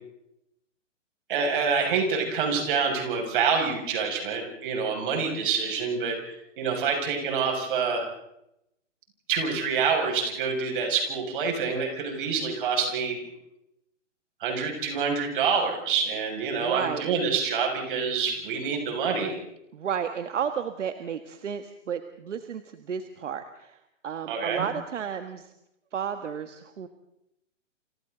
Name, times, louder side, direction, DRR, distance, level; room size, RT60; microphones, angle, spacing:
voice 1, 1.3-8.0 9.3-13.2 14.4-19.4 24.3-24.7, right 5 dB, 40° right, 1 dB, 6.7 m, -27 dB
voice 2, 16.5-17.1 19.7-25.5 25.9-26.9, right 7 dB, 70° right, 8 dB, 1.7 m, -32 dB
29.0 x 28.0 x 4.0 m, 0.83 s
hypercardioid pair, 165°, 38 cm